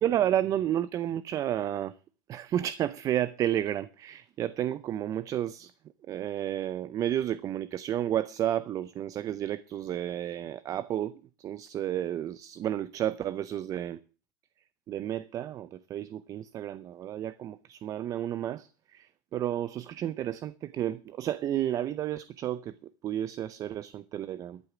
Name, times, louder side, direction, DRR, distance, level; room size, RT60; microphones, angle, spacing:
voice 1, 0.0-2.0 2.3-5.7 6.1-11.1 11.4-14.0 14.9-24.6, right 11 dB, 30° right, 0.6 m, -31 dB
13.5 x 8.0 x 6.9 m
supercardioid pair, 145°, 12 cm